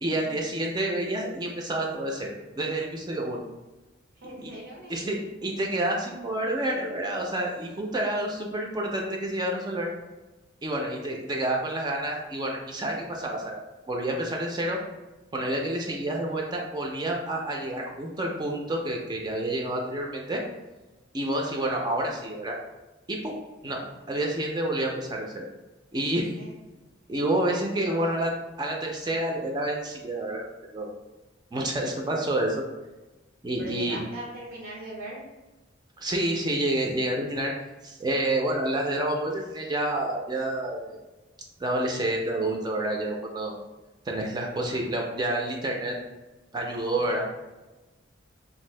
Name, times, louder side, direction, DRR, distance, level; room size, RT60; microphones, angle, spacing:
voice 1, 0.0-3.4 4.4-4.5 4.9-9.9 10.6-13.6 13.9-14.8 15.3-20.4 21.1-22.6 23.1-23.4 23.6-23.8 24.1-25.5 25.9-26.3 27.1-28.3 28.6-30.4 30.7-30.9 31.5-32.6 33.4-34.0 36.0-37.5 37.8-41.0 41.6-43.5 44.1-46.0 46.5-47.2, right 1 dB, 20° right, 0 dB, 0.3 m, -29 dB
voice 2, 4.1-5.2 23.6-23.9 26.4-26.6 27.9-28.2 33.6-35.3 44.7-44.8 46.9-47.2, right 2 dB, 85° right, -4 dB, 0.6 m, -41 dB
2.6 x 2.5 x 3.1 m, 1.1 s
head